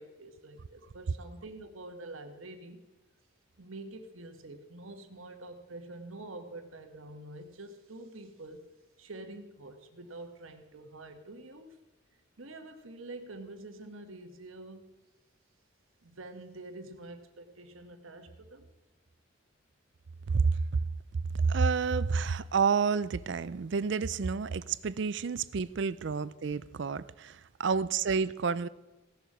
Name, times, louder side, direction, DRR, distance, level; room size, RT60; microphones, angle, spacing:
voice 1, 0.0-2.8 3.6-8.7 9.0-11.8 12.4-14.9 16.0-18.7, right 2 dB, 80° right, 1.3 m, -46 dB
voice 2, 20.3-20.8 21.3-28.7, right 5 dB, 60° right, 0.4 m, -29 dB
16.0 x 7.0 x 6.1 m
head